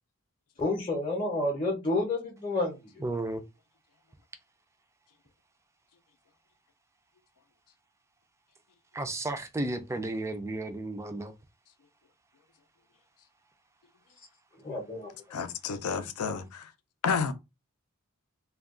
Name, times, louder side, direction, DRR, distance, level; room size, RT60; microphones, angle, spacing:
voice 1, 0.6-3.0 14.6-15.1, left 2 dB, 25° left, 0.7 m, -30 dB
voice 2, 3.0-3.4 8.9-11.3, right 2 dB, 15° right, 0.3 m, -33 dB
voice 3, 15.3-16.7 17.0-17.3, left 6 dB, 85° left, 0.5 m, -30 dB
2.3 x 2.2 x 3.6 m
head